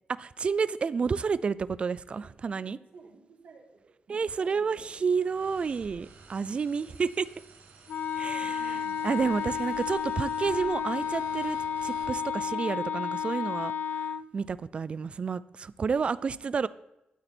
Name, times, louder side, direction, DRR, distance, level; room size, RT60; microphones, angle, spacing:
voice 1, 0.1-2.8 4.1-7.3 8.2-8.8 9.0-16.7, right 5 dB, 35° right, 18 dB, 0.3 m, -30 dB
voice 2, 2.1-5.2 6.4-6.5 6.8-6.9 8.3-9.2 16.2-16.5, right 4 dB, 60° right, 1 dB, 2.2 m, -55 dB
sound 1, 5.1-12.2, right 4 dB, 75° right, 1.8 m, -52 dB
Wind instrument woodwind instrument, 7.9-14.3, left 7 dB, 70° left, 0.4 m, -32 dB
12.0 x 8.3 x 4.4 m, 0.90 s
wide cardioid pair, 150°, 3 cm